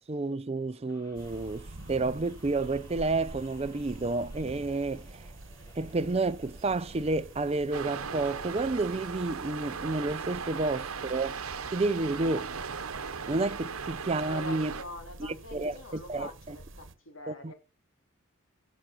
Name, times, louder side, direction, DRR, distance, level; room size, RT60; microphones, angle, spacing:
voice 1, 0.1-5.3 5.8-11.4 11.7-12.5 13.3-14.7 15.2-16.6 17.3-17.5, right 3 dB, 30° right, 0.5 m, -30 dB
sound 1, 0.9-9.5, equal, 20° left, 5.7 m, -57 dB
sound 2, 1.1-16.9, right 2 dB, 60° right, 1.2 m, -47 dB
sound 3, 7.7-14.8, right 6 dB, 90° right, 1.0 m, -38 dB
voice 2, 14.2-17.5, left 1 dB, 65° left, 3.0 m, -44 dB
17.0 x 6.3 x 4.3 m
head